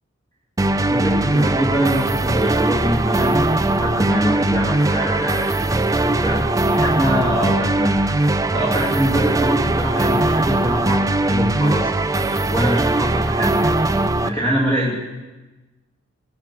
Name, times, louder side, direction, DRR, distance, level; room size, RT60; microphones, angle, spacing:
sound 1, 0.6-14.3, right 2 dB, 15° right, 0.4 m, -20 dB
voice 1, 0.8-8.0 8.5-13.6 14.2-15.0, equal, 15° left, -5 dB, 2.1 m, -24 dB
22.0 x 11.0 x 4.7 m, 1.1 s
head